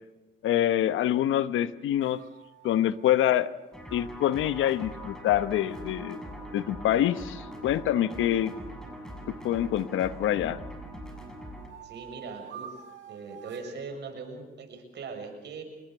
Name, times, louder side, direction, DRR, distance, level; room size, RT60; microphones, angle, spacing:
voice 1, 0.4-2.2 2.6-3.5 3.9-6.2 6.5-8.5 9.3-10.6, left 11 dB, 80° left, 14 dB, 1.1 m, -26 dB
sound 1, 2.0-5.9 8.8-10.1 10.6-13.8, right 9 dB, 75° right, 4.2 m, -50 dB
sound 2, 3.7-11.7, equal, 5° left, 7.3 m, -42 dB
voice 2, 11.8-12.7 13.1-15.6, right 4 dB, 60° right, 4 dB, 7.2 m, -40 dB
26.5 x 21.5 x 6.8 m, 1.1 s
cardioid pair, 90°, 20 cm